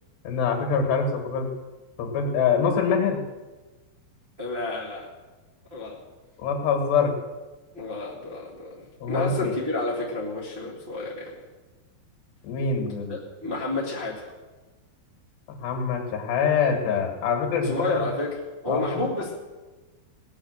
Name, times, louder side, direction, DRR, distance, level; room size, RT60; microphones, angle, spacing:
voice 1, 0.3-1.5 2.0-3.2 6.4-7.1 9.0-9.5 12.4-13.2 15.5-17.8 18.7-18.9, left 6 dB, 65° left, 3 dB, 3.7 m, -24 dB
voice 2, 4.4-5.1 5.7-6.0 7.7-11.4 13.1-14.3 17.6-19.3, left 2 dB, 25° right, -6 dB, 1.2 m, -30 dB
18.0 x 9.7 x 6.6 m, 1.2 s
omnidirectional pair, 5.7 m